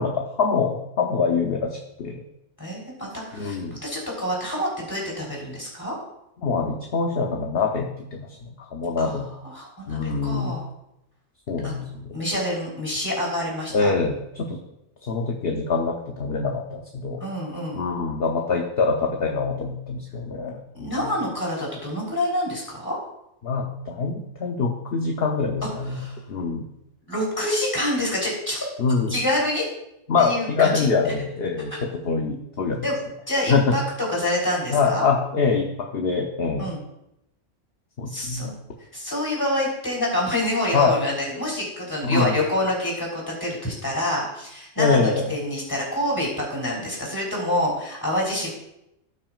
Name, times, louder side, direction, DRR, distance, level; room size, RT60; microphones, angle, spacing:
voice 1, 0.0-2.2 3.3-3.8 6.4-9.3 9.9-10.5 11.5-12.1 13.7-14.6 15.0-17.2 17.8-21.1 23.4-26.0 26.3-26.6 28.8-29.1 30.1-32.9 33.5-33.7 34.7-36.7 38.0-38.5 40.7-41.0 42.0-42.4 44.8-45.3, left 4 dB, 55° left, 1 dB, 1.0 m, -24 dB
voice 2, 2.6-6.0 9.0-9.1 9.4-10.6 11.6-11.8 12.1-13.9 17.2-17.8 20.7-23.0 25.9-26.2 27.1-28.7 29.1-29.6 30.2-30.8 32.8-33.0 33.3-35.1 36.6-36.8 38.1-38.5 38.9-48.5, left 1 dB, 15° left, -2 dB, 3.6 m, -27 dB
17.0 x 6.0 x 2.4 m, 0.83 s
omnidirectional pair, 1.3 m